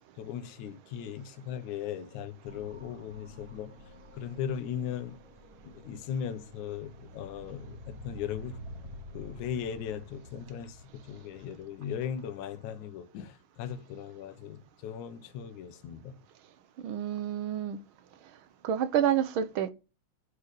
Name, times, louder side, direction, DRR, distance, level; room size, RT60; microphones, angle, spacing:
voice 1, 0.2-3.7 4.1-5.2 5.7-8.6 9.1-16.1, left 8 dB, 75° left, 2.5 m, -38 dB
sound 1, 2.4-12.5, equal, 10° right, 2.5 m, -49 dB
voice 2, 16.8-17.8 18.6-19.7, right 9 dB, 70° right, 1.2 m, -28 dB
8.2 x 7.7 x 8.3 m
omnidirectional pair, 3.4 m